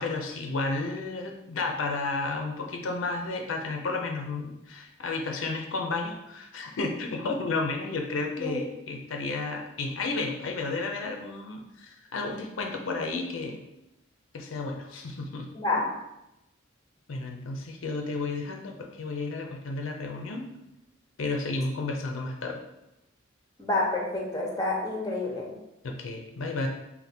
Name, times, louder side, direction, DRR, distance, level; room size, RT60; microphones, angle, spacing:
voice 1, 0.0-13.6 14.3-15.5 17.1-20.4 21.2-22.6 25.8-26.7, left 3 dB, 75° left, 2 dB, 0.5 m, -32 dB
voice 2, 8.4-8.7 15.5-15.8 23.6-25.5, left 2 dB, 20° left, -1 dB, 0.6 m, -28 dB
3.3 x 2.2 x 4.1 m, 0.90 s
head